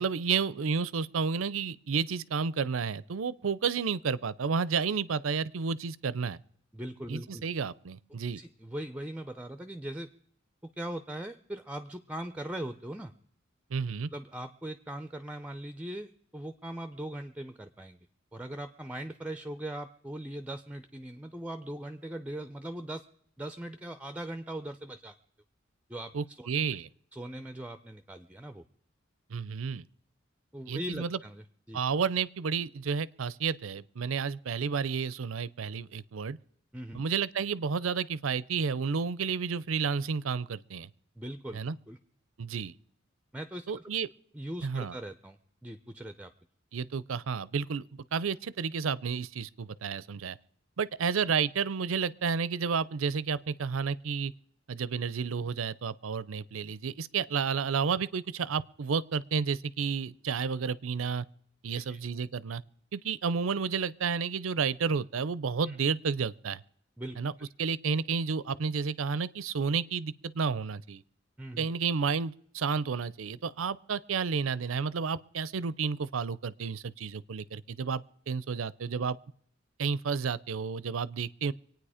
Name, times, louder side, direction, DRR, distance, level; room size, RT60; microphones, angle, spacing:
voice 1, 0.0-6.4 7.1-8.4 13.7-14.1 26.1-26.9 29.3-29.9 30.7-31.2 31.7-36.4 36.9-40.9 41.5-41.8 42.4-42.7 43.7-44.1 44.6-45.0 46.7-50.4 50.8-54.3 54.7-61.2 61.6-62.6 62.9-66.6 67.2-67.3 67.6-71.0 71.6-79.2 79.8-81.5, right 5 dB, 85° right, 0.5 m, -31 dB
voice 2, 6.7-7.4 8.3-10.1 10.6-13.1 14.1-18.0 18.3-23.0 23.4-25.2 25.9-26.5 27.1-28.6 30.5-31.8 36.7-37.0 41.2-41.6 41.9-42.0 43.3-43.8 44.3-46.3 61.7-62.0 65.7-65.8 67.0-67.5 71.4-71.7, right 1 dB, 5° right, 0.5 m, -40 dB
25.0 x 9.2 x 4.9 m
head